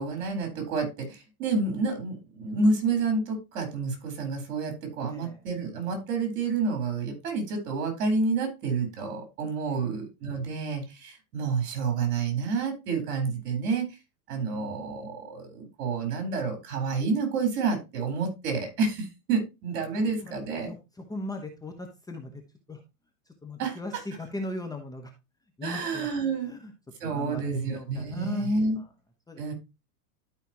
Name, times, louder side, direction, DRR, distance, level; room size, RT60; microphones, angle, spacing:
voice 1, 0.0-14.0 14.3-20.7 23.6-23.8 25.6-26.5 27.0-28.8 29.4-29.5, right 4 dB, 60° right, 5 dB, 4.1 m, -29 dB
voice 2, 5.1-5.4 9.7-10.0 14.5-15.0 20.2-20.3 20.7-20.8 21.1-22.4 22.7-22.8 23.3-25.1 25.6-26.1 26.4-26.7 27.0-28.5 28.8-28.9 29.3-29.5, left 1 dB, 10° left, 4 dB, 1.0 m, -38 dB
12.0 x 5.3 x 2.9 m, 0.25 s
hypercardioid pair, 130°, 45 cm